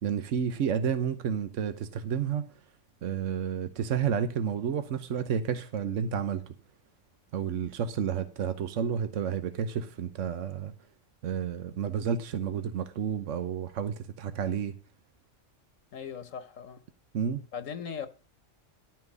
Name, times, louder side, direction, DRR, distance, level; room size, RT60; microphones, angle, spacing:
voice 1, 0.0-2.5 3.0-6.5 7.3-10.7 11.2-14.7 17.1-17.4, right 7 dB, 75° right, 1.2 m, -31 dB
voice 2, 15.9-16.8 17.5-18.1, left 7 dB, 85° left, 1.4 m, -38 dB
11.5 x 6.1 x 6.1 m
omnidirectional pair, 1.3 m